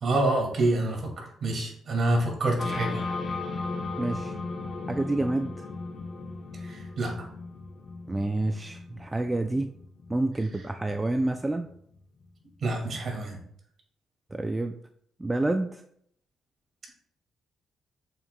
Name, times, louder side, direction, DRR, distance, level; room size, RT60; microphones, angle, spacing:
voice 1, 0.0-3.0 6.6-7.1 12.6-13.4, right 2 dB, 50° right, 1 dB, 2.3 m, -27 dB
sound 1, 2.6-12.2, left 3 dB, 40° left, 0.8 m, -36 dB
voice 2, 4.0-4.3 4.9-5.7 8.1-9.7 10.1-11.7 14.3-14.7 15.2-15.8, right 2 dB, 15° right, 7 dB, 0.4 m, -28 dB
7.1 x 5.8 x 2.3 m, 0.67 s
cardioid pair, 90°, 0 cm